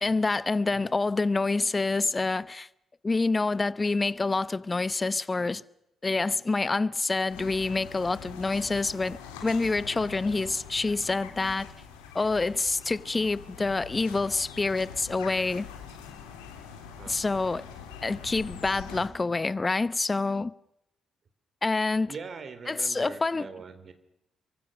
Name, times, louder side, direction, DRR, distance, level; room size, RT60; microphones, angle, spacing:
voice 1, 0.0-2.7 3.0-5.6 6.0-11.7 12.1-15.7 17.1-17.7 18.0-20.5 21.6-22.1 22.7-23.5, left 3 dB, 30° left, 0.9 m, -27 dB
sound 1, 7.3-19.1, left 7 dB, 80° left, 3.4 m, -44 dB
voice 2, 22.1-23.9, right 5 dB, 50° right, 3.5 m, -42 dB
26.5 x 24.0 x 6.5 m
hypercardioid pair, 40°, 0 cm